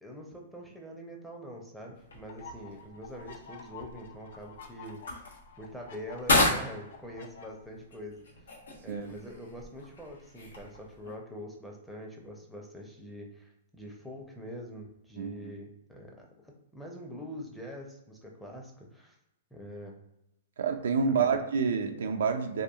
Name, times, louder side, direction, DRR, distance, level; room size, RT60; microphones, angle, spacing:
voice 1, 0.0-5.0 5.6-8.2 8.8-19.1 19.5-20.0 21.1-21.4, equal, ahead, -1 dB, 0.5 m, -44 dB
sound 1, 1.9-11.1, left 2 dB, 90° left, 0.8 m, -34 dB
sound 2, 2.3-7.5, left 4 dB, 65° left, 0.4 m, -49 dB
voice 2, 15.2-15.5 20.6-22.6, right 5 dB, 75° right, 6 dB, 0.3 m, -28 dB
2.7 x 2.3 x 2.3 m, 0.83 s
hypercardioid pair, 130°, 0 cm